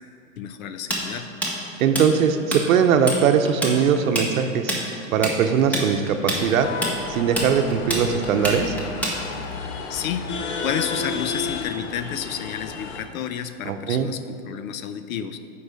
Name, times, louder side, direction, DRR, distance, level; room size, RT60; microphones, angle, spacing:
voice 1, 0.4-1.3 9.9-10.3 10.6-15.4, left 9 dB, 85° left, 10 dB, 0.7 m, -31 dB
Tools, 0.9-2.6 2.9-3.2 3.5-9.5, right 1 dB, 5° left, 0.9 m, -26 dB
voice 2, 1.8-4.7 5.1-6.7 7.1-8.7 13.6-14.1, right 7 dB, 80° right, 8 dB, 0.8 m, -20 dB
sound 1, 6.3-13.0, left 4 dB, 55° left, 0.9 m, -32 dB
8.1 x 4.9 x 4.9 m, 2.6 s
supercardioid pair, 140°, 41 cm